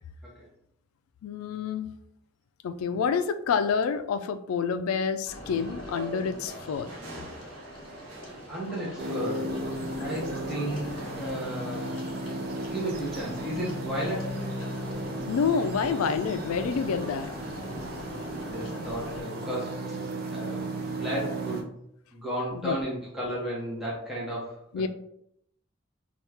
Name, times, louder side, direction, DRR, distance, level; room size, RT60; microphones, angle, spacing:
voice 1, 1.2-1.9 2.6-7.0 15.3-17.3 22.5-22.8 24.7-24.9, left 6 dB, 90° left, 10 dB, 0.3 m, -28 dB
sound 1, 5.2-19.2, equal, 25° left, 0.9 m, -44 dB
sound 2, 5.3-18.2, right 1 dB, 70° right, 0.8 m, -45 dB
voice 2, 8.1-9.4 10.0-12.0 12.6-14.4 18.4-20.0 20.3-20.6 20.9-21.7 22.1-24.6, right 1 dB, ahead, -7 dB, 0.7 m, -34 dB
sound 3, 9.0-21.6, right 1 dB, 45° right, 0.4 m, -35 dB
3.0 x 2.3 x 3.3 m, 0.73 s
head